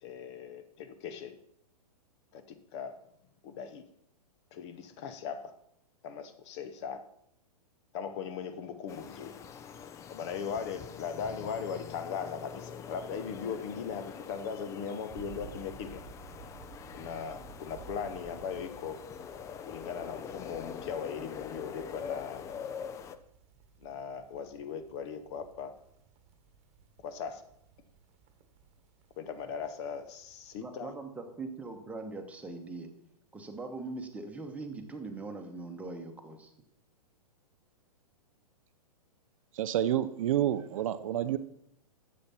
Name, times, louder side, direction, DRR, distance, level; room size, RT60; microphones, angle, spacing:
voice 1, 0.0-1.3 2.3-2.9 3.4-3.8 4.5-5.5 6.0-7.0 7.9-9.3 10.1-16.0 16.9-19.0 19.7-22.4 23.8-25.7 27.0-27.4 29.2-30.9, left 6 dB, 45° left, 10 dB, 1.0 m, -39 dB
sound 1, 8.9-23.2, left 7 dB, 15° left, 0.4 m, -44 dB
sound 2, 15.1-30.6, right 6 dB, 30° right, 1.3 m, -54 dB
voice 2, 30.6-32.9 33.3-36.5, right 3 dB, 5° right, 3 dB, 1.2 m, -41 dB
voice 3, 39.5-41.4, right 11 dB, 55° right, 13 dB, 0.5 m, -29 dB
9.7 x 7.5 x 4.3 m, 0.74 s
hypercardioid pair, 120°, 20 cm